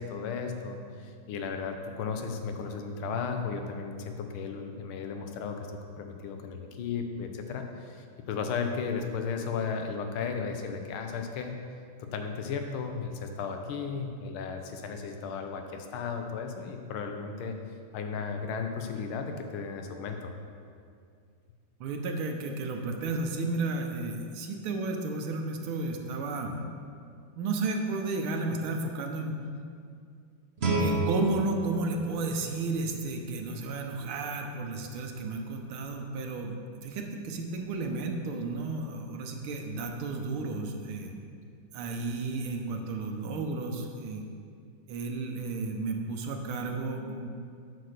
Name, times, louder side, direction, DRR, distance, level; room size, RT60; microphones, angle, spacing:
voice 1, 0.0-5.7 6.0-11.6 12.0-17.6 17.9-20.3, left 5 dB, 85° left, 5 dB, 1.6 m, -35 dB
voice 2, 21.8-26.6 27.4-29.4 30.8-41.1 41.7-44.2 44.9-47.3, right 3 dB, 80° right, 3 dB, 1.7 m, -33 dB
Guitar, 30.6-33.4, right 2 dB, 50° right, 0.7 m, -32 dB
8.7 x 4.3 x 6.6 m, 2.3 s
omnidirectional pair, 2.3 m